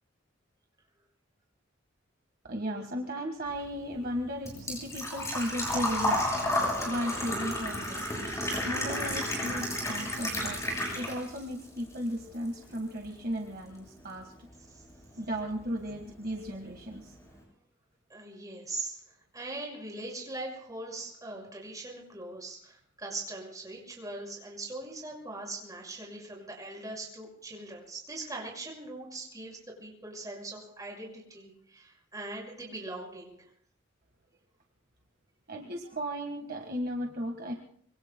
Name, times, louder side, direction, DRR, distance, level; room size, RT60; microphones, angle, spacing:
voice 1, 2.4-6.3 6.8-8.1 8.4-10.6 10.9-14.5 15.1-17.1 35.5-37.5, equal, 50° right, 2 dB, 1.6 m, -35 dB
Engine / Trickle dribble / Fill (with liquid), 3.5-11.4 11.8-12.8 13.0-13.1 15.1-15.2 15.3-15.7 16.0-16.1 16.4-16.5, left 1 dB, 15° left, 7.1 m, -32 dB
voice 2, 18.1-19.0 19.3-33.5, right 2 dB, 20° right, -1 dB, 5.9 m, -41 dB
26.0 x 24.0 x 2.3 m, 0.62 s
head